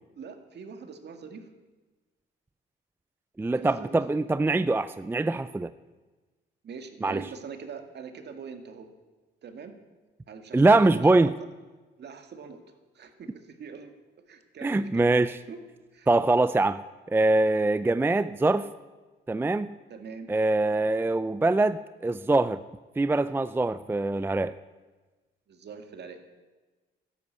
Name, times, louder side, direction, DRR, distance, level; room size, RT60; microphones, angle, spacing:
voice 1, 0.2-1.5 3.6-4.0 6.6-8.9 9.4-9.7 10.3-11.3 12.0-12.6 12.9-13.9 14.3-15.6 15.9-16.1 19.9-20.3 25.5-26.4, right 5 dB, 60° right, 6 dB, 2.0 m, -43 dB
voice 2, 3.4-5.7 7.0-7.2 10.5-11.3 14.6-15.4 16.1-16.8 17.1-18.7 19.3-19.7 20.3-22.6 23.0-24.5, right 2 dB, 10° right, 14 dB, 0.4 m, -23 dB
13.0 x 11.5 x 8.1 m, 1.2 s
cardioid pair, 90°, 20 cm